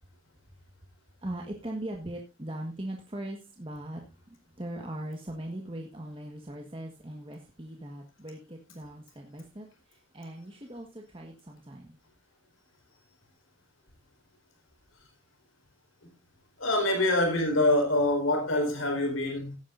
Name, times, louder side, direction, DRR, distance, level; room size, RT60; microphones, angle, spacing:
voice 1, 1.2-4.0 4.6-12.0, right 1 dB, 25° right, 1.5 m, -40 dB
voice 2, 16.6-19.6, left 1 dB, 85° left, 4.6 m, -25 dB
17.5 x 9.7 x 2.6 m
head